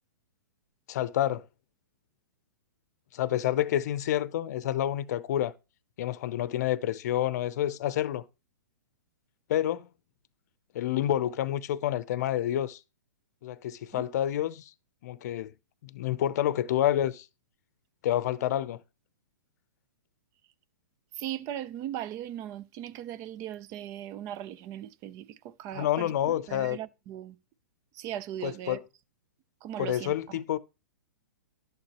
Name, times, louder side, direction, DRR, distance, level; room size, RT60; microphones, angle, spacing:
voice 1, 0.9-1.4 3.1-5.5 6.0-8.2 9.5-9.9 10.7-12.8 13.4-14.7 15.0-15.5 15.8-17.3 18.0-18.8 25.7-26.8 28.4-28.8 29.8-30.6, left 12 dB, 55° left, 0.6 m, -28 dB
voice 2, 21.1-27.4 27.9-28.8 29.6-30.6, right 11 dB, 30° right, 0.5 m, -38 dB
11.5 x 7.1 x 3.0 m
hypercardioid pair, 125°, 10 cm